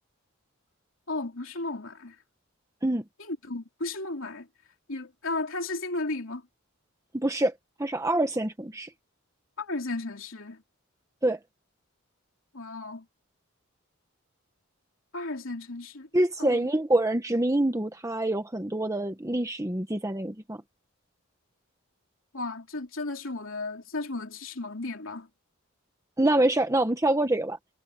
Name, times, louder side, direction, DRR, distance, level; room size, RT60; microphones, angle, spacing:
voice 1, 1.1-2.2 3.2-4.5 4.9-6.4 9.6-10.6 12.5-13.1 15.1-16.1 16.4-16.6 22.3-25.3, left 2 dB, 65° left, 3.4 m, -34 dB
voice 2, 7.1-7.5 7.8-8.9 11.2-11.4 16.1-20.6 26.2-27.6, right 1 dB, 15° right, 1.1 m, -25 dB
head